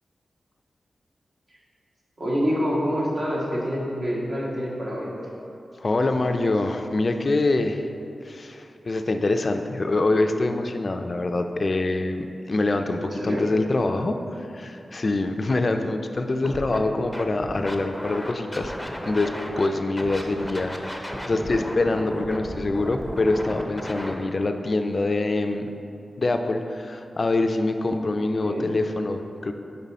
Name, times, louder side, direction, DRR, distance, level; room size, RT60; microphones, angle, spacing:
voice 1, 2.2-5.1 13.0-13.4 28.4-28.7, equal, 55° right, -5 dB, 1.4 m, -26 dB
voice 2, 5.8-7.9 8.2-18.7 19.0-25.7 26.2-29.5, left 2 dB, 50° left, 6 dB, 0.3 m, -25 dB
Scratching (performance technique), 16.4-16.8 17.1-19.7 20.0-24.2, equal, 5° left, 0.6 m, -33 dB
5.4 x 5.3 x 4.1 m, 2.6 s
cardioid pair, 65°, 0 cm